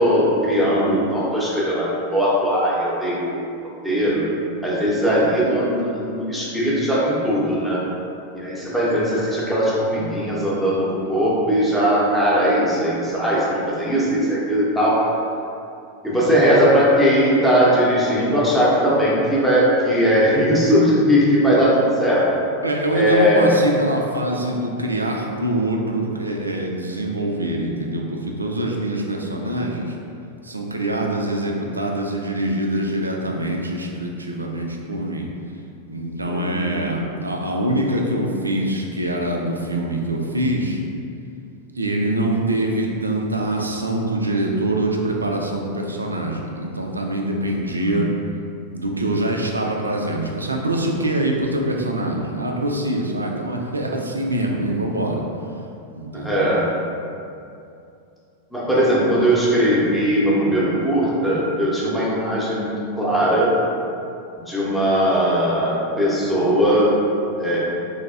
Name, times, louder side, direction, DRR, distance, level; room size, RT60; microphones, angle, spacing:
voice 1, 0.0-3.4 3.8-4.2 4.6-7.8 8.3-15.0 16.0-22.3 22.9-23.5 36.3-36.8 47.7-48.1 56.1-56.7 58.5-63.5 64.5-67.0 67.4-67.6, equal, 5° left, -8 dB, 0.8 m, -19 dB
voice 2, 22.6-30.0 30.4-35.3 35.9-40.8 41.7-48.1 48.7-55.2 55.9-56.5, right 1 dB, 80° right, 1 dB, 0.3 m, -24 dB
3.1 x 2.7 x 2.4 m, 2.6 s
figure-of-eight pair, 90°, 0 cm